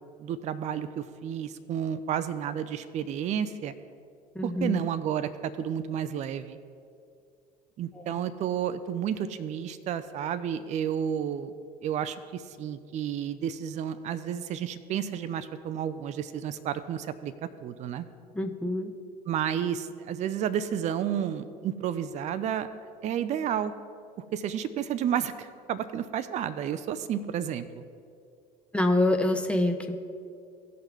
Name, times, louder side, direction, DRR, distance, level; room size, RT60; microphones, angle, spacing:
voice 1, 0.2-3.7 4.4-6.6 7.8-11.5 11.8-17.3 17.6-18.0 19.3-22.7 23.0-23.7 24.3-27.8, right 9 dB, 35° right, 12 dB, 0.5 m, -31 dB
voice 2, 4.4-4.8 7.9-8.2 18.3-18.9 28.7-29.9, left 1 dB, 5° left, 5 dB, 0.7 m, -26 dB
17.0 x 5.7 x 3.6 m, 2.3 s
figure-of-eight pair, 65°, 21 cm